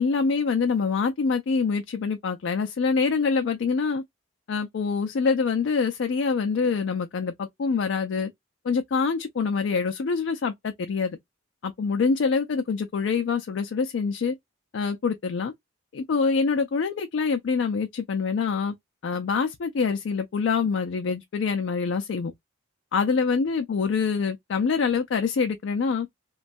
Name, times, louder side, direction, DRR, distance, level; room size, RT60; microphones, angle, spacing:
voice 1, 0.0-4.0 4.5-8.3 8.6-11.2 11.6-14.4 14.7-15.5 15.9-18.7 19.0-22.3 22.9-26.1, left 5 dB, 65° left, 0.4 m, -25 dB
3.0 x 2.3 x 2.5 m
head